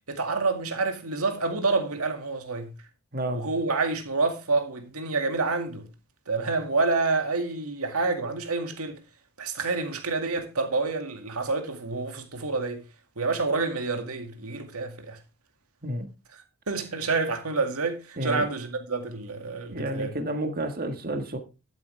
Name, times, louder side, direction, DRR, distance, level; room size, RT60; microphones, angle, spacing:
voice 1, 0.1-2.7 3.3-5.9 6.3-9.0 9.4-12.8 13.2-15.2 16.7-20.1, right 3 dB, 85° right, 2.1 m, -28 dB
voice 2, 18.2-18.5 19.7-21.4, right 1 dB, 40° right, 1.6 m, -30 dB
12.0 x 8.4 x 3.4 m
head